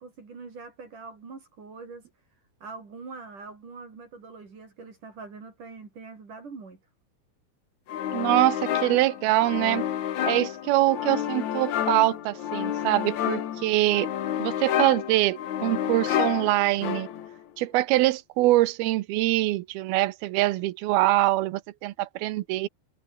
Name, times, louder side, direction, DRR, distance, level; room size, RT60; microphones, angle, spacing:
voice 1, 0.0-2.1 2.6-6.8, right 4 dB, 55° right, 6.4 m, -43 dB
sound 1, 7.9-17.4, left 10 dB, 55° left, 2.5 m, -30 dB
voice 2, 8.1-9.9 10.3-14.1 14.4-17.1 17.6-22.7, right 17 dB, 80° right, 2.7 m, -24 dB
omnidirectional pair, 4.5 m